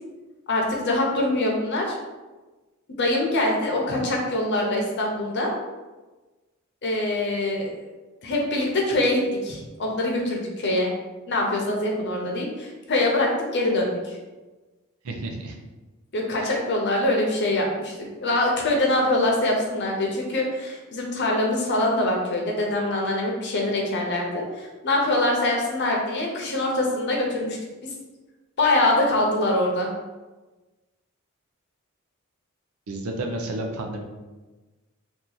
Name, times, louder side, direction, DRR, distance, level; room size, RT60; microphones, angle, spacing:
voice 1, 0.5-2.0 3.0-5.5 6.8-7.8 8.2-10.9 11.3-14.2 16.1-27.6 28.6-29.9, left 1 dB, 55° left, 0 dB, 0.8 m, -24 dB
voice 2, 15.0-15.6 16.4-16.5 32.9-34.0, right 2 dB, 80° right, 2 dB, 0.6 m, -31 dB
2.9 x 2.5 x 3.9 m, 1.2 s
head